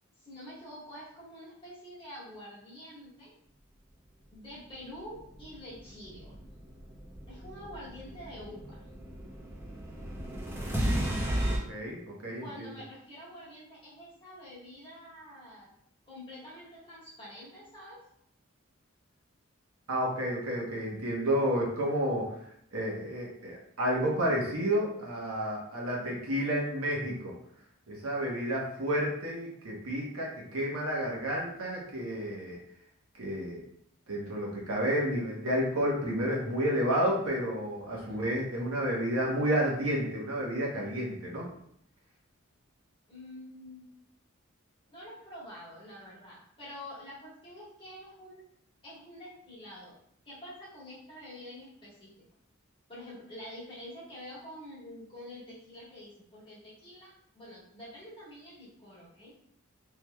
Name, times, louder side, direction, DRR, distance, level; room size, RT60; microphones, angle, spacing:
voice 1, 0.2-3.3 4.3-6.4 7.3-8.8 12.4-15.7 16.1-18.0 38.1-38.2 43.1-44.0 44.9-48.4 48.8-50.0 50.2-52.1 52.9-59.3, left 1 dB, 25° left, -8 dB, 1.4 m, -47 dB
sound 1, 5.2-11.6, right 1 dB, 10° right, 0.4 m, -35 dB
voice 2, 11.5-12.7 19.9-22.3 22.7-27.3 27.9-32.6 33.2-33.6 34.1-41.5, equal, 90° right, -2 dB, 1.0 m, -31 dB
3.7 x 3.1 x 2.3 m, 0.69 s
head